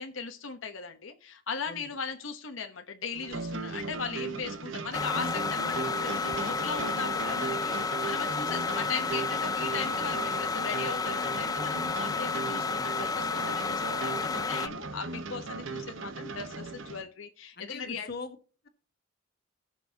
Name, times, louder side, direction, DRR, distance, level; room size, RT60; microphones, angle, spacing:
voice 1, 0.0-18.1, left 5 dB, 85° left, 6 dB, 1.0 m, -38 dB
voice 2, 1.6-1.9 12.5-12.9 17.5-18.4 18.6-18.7, left 3 dB, 55° left, 8 dB, 1.5 m, -42 dB
sound 1, 3.1-17.0, right 4 dB, 80° right, 1.1 m, -37 dB
sound 2, 4.9-14.7, left 4 dB, 20° left, 0.3 m, -31 dB
18.0 x 6.1 x 2.8 m, 0.38 s
head